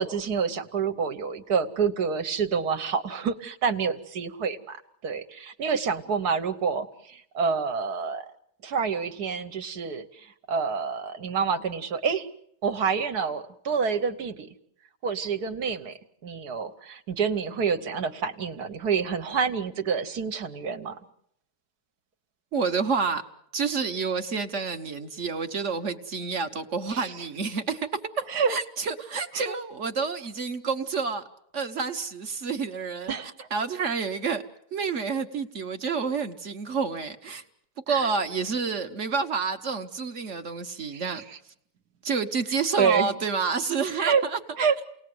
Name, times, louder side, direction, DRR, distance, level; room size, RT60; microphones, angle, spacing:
voice 1, 0.0-4.8 5.0-8.3 8.6-12.3 12.6-14.5 15.0-21.0 26.9-27.3 28.3-28.6 29.4-29.5 33.1-33.5 33.8-33.9 37.9-38.1 40.9-41.4 42.8-43.1 44.0-44.2 44.6-44.8, right 6 dB, 65° right, 8 dB, 1.7 m, -28 dB
voice 2, 22.5-23.2 23.5-31.2 31.5-33.1 33.5-34.4 34.7-37.4 37.9-41.2 42.0-44.4, right 5 dB, 45° right, 7 dB, 1.4 m, -29 dB
28.5 x 19.5 x 7.8 m, 0.75 s
omnidirectional pair, 1.8 m